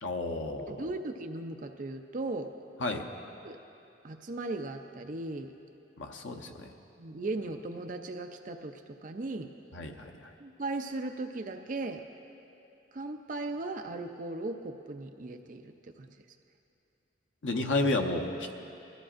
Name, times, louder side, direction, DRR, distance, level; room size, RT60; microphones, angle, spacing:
voice 1, 0.0-0.9 2.8-3.0 6.0-6.7 9.7-10.1 17.4-18.5, left 2 dB, 80° left, 3 dB, 0.9 m, -31 dB
voice 2, 0.7-2.5 3.4-3.6 4.0-5.5 7.0-9.5 10.4-12.0 12.9-16.2, right 2 dB, 45° right, 6 dB, 0.5 m, -37 dB
21.0 x 14.0 x 2.5 m, 2.7 s
head